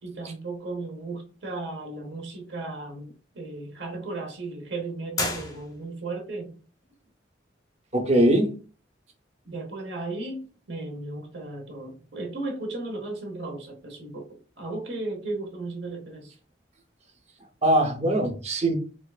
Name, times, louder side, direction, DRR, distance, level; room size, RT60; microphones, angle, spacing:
voice 1, 0.0-6.6 9.4-16.3, right 2 dB, 70° right, 3 dB, 0.9 m, -35 dB
sound 1, 5.1-6.1, left 3 dB, 20° left, 0.5 m, -32 dB
voice 2, 7.9-8.5 17.6-18.8, right 1 dB, 35° right, 4 dB, 0.7 m, -21 dB
4.5 x 2.4 x 2.4 m, 0.36 s
head